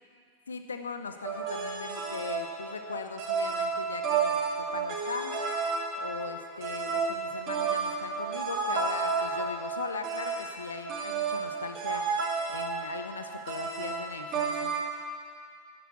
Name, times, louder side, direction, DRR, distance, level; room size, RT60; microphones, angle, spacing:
voice 1, 0.5-5.4 6.0-14.7, left 5 dB, 70° left, 8 dB, 0.7 m, -39 dB
sound 1, 1.2-14.9, right 5 dB, 35° right, 2.1 m, -32 dB
11.0 x 10.0 x 8.3 m, 2.1 s
figure-of-eight pair, 90°, 0 cm